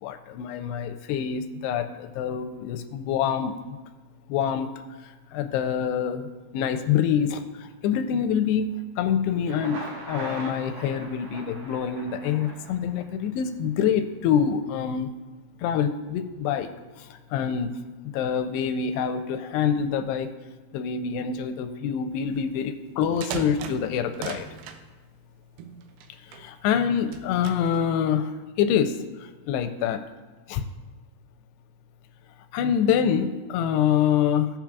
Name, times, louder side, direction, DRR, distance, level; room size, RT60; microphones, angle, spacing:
voice 1, 0.0-3.8 4.3-4.7 5.0-6.3 6.5-15.1 15.6-16.7 17.0-17.7 18.1-20.3 20.7-24.5 26.2-28.3 28.6-30.0 30.5-30.6 32.5-34.5, left 8 dB, 85° left, 7 dB, 2.6 m, -26 dB
Thunder, 9.3-13.3, right 2 dB, 60° right, 2.3 m, -40 dB
sound 1, 22.9-24.8 25.6-26.5 27.0-27.8, right 7 dB, 80° right, 2.3 m, -38 dB
16.5 x 7.3 x 2.3 m, 1.3 s
omnidirectional pair, 4.9 m